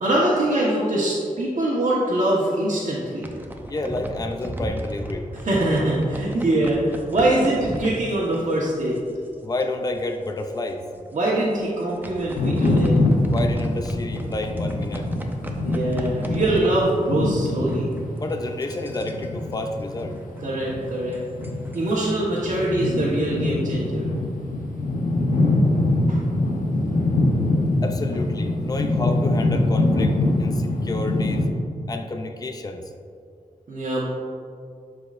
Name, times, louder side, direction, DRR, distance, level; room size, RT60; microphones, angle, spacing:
voice 1, 0.0-3.3 5.4-8.9 11.1-13.0 15.6-17.9 20.4-21.2 21.7-24.1 26.1-26.2 33.7-34.0, right 1 dB, 65° right, -7 dB, 1.2 m, -23 dB
sound 1, 3.0-9.3 9.6-9.9 10.2-10.3 10.8-11.0 11.6-17.4 17.6-22.3, right 1 dB, 15° right, 0.7 m, -36 dB
voice 2, 3.6-5.3 9.4-10.8 13.2-15.1 18.2-20.2 27.8-31.5 31.9-32.9, left 2 dB, 30° left, 5 dB, 0.5 m, -30 dB
sound 2, 12.4-31.5, left 2 dB, 90° left, 0.8 m, -24 dB
11.5 x 4.9 x 2.5 m, 2.3 s
wide cardioid pair, 100°, 14 cm